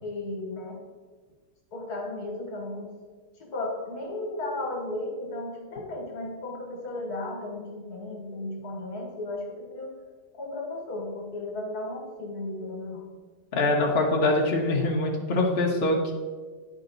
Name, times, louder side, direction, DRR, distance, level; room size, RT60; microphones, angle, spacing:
voice 1, 0.0-0.8 1.7-2.9 3.4-9.9 10.3-13.0, left 2 dB, 60° left, 1 dB, 1.8 m, -35 dB
voice 2, 13.5-16.1, left 2 dB, 45° left, -1 dB, 1.0 m, -24 dB
10.0 x 5.1 x 3.9 m, 1.4 s
omnidirectional pair, 1.9 m